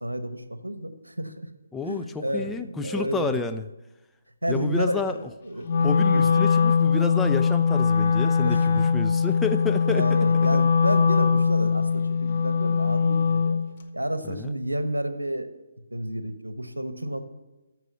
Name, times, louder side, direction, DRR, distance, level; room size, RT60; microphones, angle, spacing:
voice 1, 0.0-1.5 1.9-3.4 4.4-6.3 8.4-8.8 9.2-9.5 9.8-13.6 13.9-15.5 15.9-17.2, equal, 80° right, 10 dB, 1.0 m, -30 dB
voice 2, 1.7-3.7 4.5-5.2 5.8-10.2 14.2-14.5, left 4 dB, 5° left, 6 dB, 0.3 m, -30 dB
Wind instrument woodwind instrument, 5.6-13.7, left 5 dB, 35° left, 0.9 m, -21 dB
13.5 x 4.7 x 6.9 m, 1.0 s
figure-of-eight pair, 145°, 0 cm